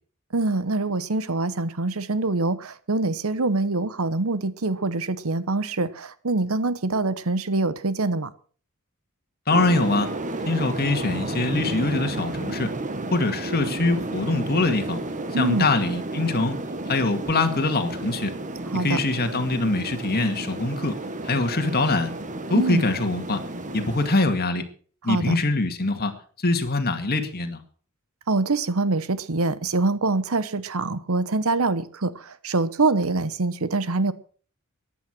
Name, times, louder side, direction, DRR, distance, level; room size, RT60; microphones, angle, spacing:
voice 1, 0.3-8.3 15.3-15.7 18.7-19.0 22.5-22.8 25.1-25.4 28.3-34.1, right 3 dB, 70° right, 1.0 m, -24 dB
voice 2, 9.5-10.1 10.5-12.7 13.1-15.0 15.3-16.6 16.9-18.3 18.7-21.0 21.2-22.1 22.5-23.4 23.7-24.6 25.0-26.1 26.4-27.6, left 2 dB, 45° left, 2.1 m, -23 dB
sound 1, 9.5-24.2, right 2 dB, 35° right, 1.4 m, -32 dB
14.5 x 10.5 x 6.2 m
head